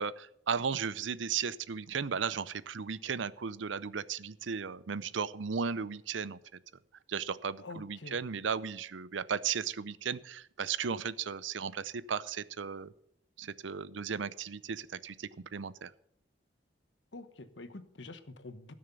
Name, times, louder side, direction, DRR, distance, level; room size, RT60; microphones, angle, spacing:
voice 1, 0.0-6.4 7.1-12.9 13.4-15.9, right 6 dB, 85° right, 17 dB, 0.6 m, -35 dB
voice 2, 7.6-8.2 17.1-18.7, left 2 dB, 75° left, 11 dB, 1.2 m, -46 dB
16.5 x 6.6 x 7.0 m, 0.72 s
head